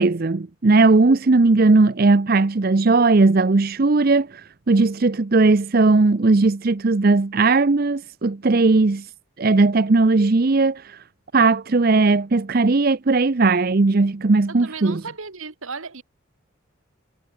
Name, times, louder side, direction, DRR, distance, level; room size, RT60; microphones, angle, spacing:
voice 1, 0.0-9.1 9.4-11.0 11.3-15.0, right 3 dB, 45° right, 0.6 m, -17 dB
voice 2, 14.5-16.0, right 4 dB, 75° right, 1.8 m, -35 dB
head